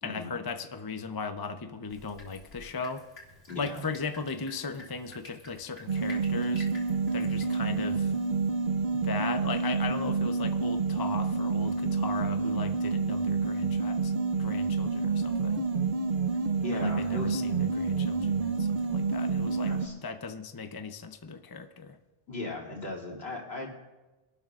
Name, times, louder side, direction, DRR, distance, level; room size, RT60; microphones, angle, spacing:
voice 1, 0.0-3.0 3.6-6.7 7.1-8.1 8.9-15.6 16.7-19.7 20.0-22.0, left 4 dB, 30° left, 7 dB, 0.5 m, -37 dB
Drip, 1.9-8.5, left 2 dB, 75° left, 3.4 m, -51 dB
voice 2, 3.5-3.8 16.6-17.4 19.7-19.9 22.3-23.7, left 2 dB, 55° left, -2 dB, 3.3 m, -37 dB
sound 1, 5.9-19.9, right 4 dB, 50° right, 0.9 m, -28 dB
25.5 x 12.0 x 2.5 m, 1.1 s
omnidirectional pair, 1.2 m